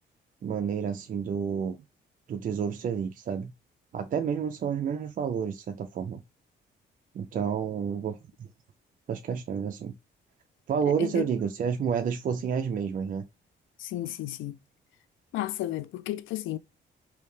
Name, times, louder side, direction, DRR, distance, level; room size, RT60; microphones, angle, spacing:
voice 1, 0.4-1.8 2.3-3.5 3.9-6.2 7.1-8.5 9.1-9.9 10.7-13.2, right 7 dB, 45° right, 0.4 m, -30 dB
voice 2, 13.8-14.6 15.3-16.6, left 14 dB, 80° left, 0.4 m, -33 dB
3.3 x 2.7 x 3.2 m
cardioid pair, 90°, 20 cm